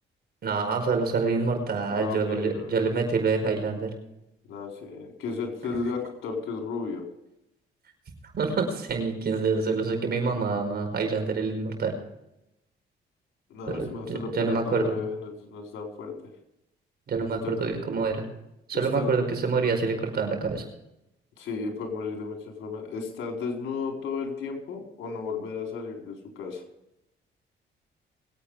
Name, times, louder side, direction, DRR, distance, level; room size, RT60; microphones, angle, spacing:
voice 1, 0.4-3.9 8.3-11.9 13.7-14.9 17.1-18.2 18.7-20.6, right 4 dB, 55° right, 4 dB, 5.0 m, -27 dB
voice 2, 1.9-2.9 4.5-7.0 13.5-16.1 17.4-17.7 18.7-19.1 21.4-26.6, left 4 dB, 85° left, 1 dB, 4.4 m, -34 dB
22.5 x 9.0 x 5.0 m, 0.86 s
cardioid pair, 90°, 20 cm